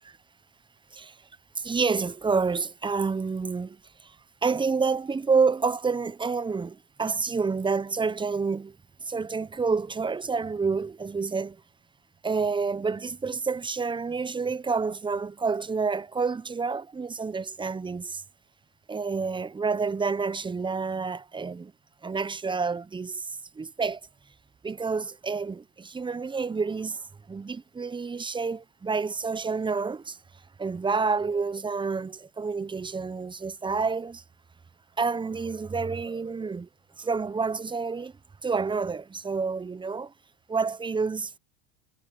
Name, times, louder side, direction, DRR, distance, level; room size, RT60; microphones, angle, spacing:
voice 1, 1.6-3.8 4.0-4.2 4.4-8.8 9.0-11.6 12.2-18.2 18.9-21.7 22.0-23.3 23.6-24.0 24.6-30.2 30.6-34.2 35.0-36.7 37.0-38.1 38.4-40.1 40.5-41.3, right 4 dB, 10° right, 0.8 m, -28 dB
hypercardioid pair, 95°, 41 cm